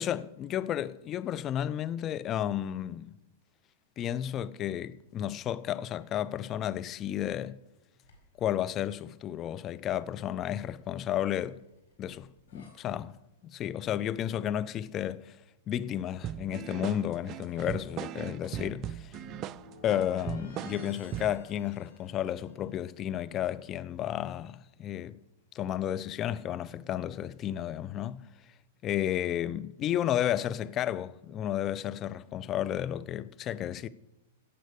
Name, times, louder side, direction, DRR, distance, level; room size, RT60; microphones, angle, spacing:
voice 1, 0.0-3.2 4.0-7.6 8.4-11.6 12.0-13.1 13.4-15.4 15.7-19.1 19.8-25.2 25.5-28.2 28.8-33.9, left 11 dB, 30° left, 0.6 m, -32 dB
sound 1, 8.0-8.5 10.3-12.7 16.2-22.6, left 3 dB, 75° left, 4.8 m, -57 dB
sound 2, 16.2-21.4, right 11 dB, 35° right, 0.4 m, -39 dB
16.0 x 7.7 x 6.7 m
hypercardioid pair, 110°, 0 cm